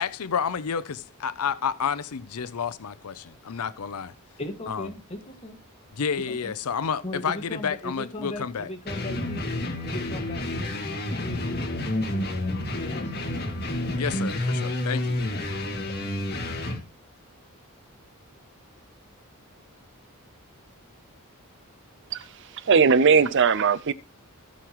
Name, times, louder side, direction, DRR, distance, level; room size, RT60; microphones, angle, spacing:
voice 1, 0.0-4.1 4.7-4.9 5.9-8.7 13.9-15.2, left 6 dB, 80° left, 0.6 m, -30 dB
voice 2, 4.4-5.6 6.3-6.5 7.0-9.4 9.8-13.1, left 1 dB, 30° left, 2.0 m, -38 dB
sound 1, 8.9-16.8, left 1 dB, 45° left, 2.1 m, -29 dB
voice 3, 22.6-23.9, right 5 dB, 55° right, 0.6 m, -19 dB
17.0 x 6.4 x 3.1 m
head